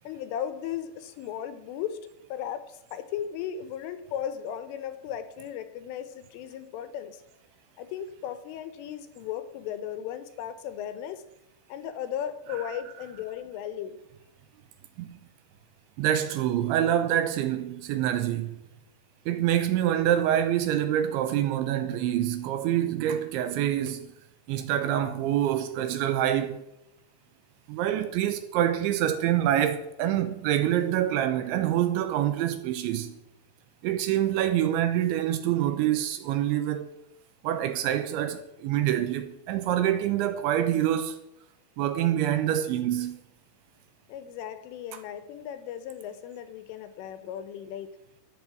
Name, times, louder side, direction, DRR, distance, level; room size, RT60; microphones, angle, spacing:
voice 1, 0.1-2.0 2.3-7.2 7.8-11.2 11.7-14.0 44.1-47.9, left 9 dB, 80° left, 3.6 m, -36 dB
voice 2, 16.0-18.6 19.3-24.1 24.5-26.6 27.7-33.2 33.8-36.9 37.4-41.2 41.8-43.2, right 11 dB, 80° right, 3.0 m, -26 dB
12.5 x 10.5 x 7.4 m
omnidirectional pair, 5.8 m